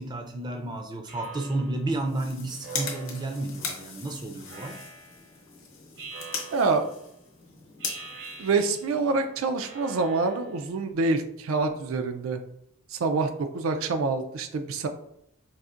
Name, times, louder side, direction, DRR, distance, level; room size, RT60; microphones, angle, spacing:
voice 1, 0.0-4.8, right 2 dB, 20° right, 4 dB, 0.3 m, -32 dB
Speech synthesizer, 1.1-1.9 2.6-3.5 4.5-5.3 6.0-7.0 7.8-9.0 9.6-10.6, right 4 dB, 60° right, 0.7 m, -43 dB
sound 1, 2.0-9.3, left 5 dB, 70° left, 0.8 m, -39 dB
voice 2, 6.5-6.9 8.4-12.4 12.9-14.9, right 3 dB, 85° right, 7 dB, 0.4 m, -26 dB
4.1 x 2.5 x 2.4 m, 0.75 s
head